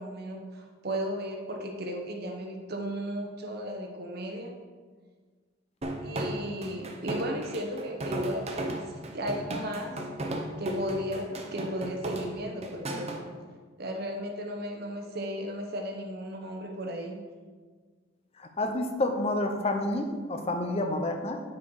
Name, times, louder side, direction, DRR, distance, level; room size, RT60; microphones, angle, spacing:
voice 1, 0.0-4.5 6.0-10.0 10.6-13.2 13.8-17.2, equal, 55° right, 2 dB, 1.1 m, -35 dB
sound 1, 5.8-13.2, right 1 dB, 35° right, 0.8 m, -35 dB
voice 2, 18.6-21.4, left 1 dB, 30° left, 5 dB, 0.7 m, -29 dB
8.7 x 4.5 x 4.8 m, 1.5 s
head